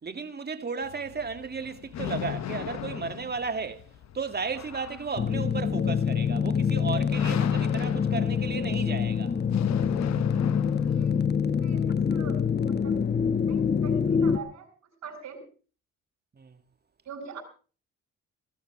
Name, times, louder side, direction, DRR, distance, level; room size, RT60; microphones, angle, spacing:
voice 1, 0.0-3.9 4.1-9.3 16.4-16.6, right 5 dB, 35° right, 2.2 m, -34 dB
sound 1, 0.8-11.2, left 10 dB, 65° left, 1.1 m, -38 dB
sound 2, 5.2-14.4, left 6 dB, 35° left, 1.2 m, -25 dB
voice 2, 10.8-11.2 11.5-13.2 13.5-15.4 17.0-17.4, right 5 dB, 70° right, 7.6 m, -43 dB
19.5 x 14.0 x 4.7 m
cardioid pair, 90°, 30 cm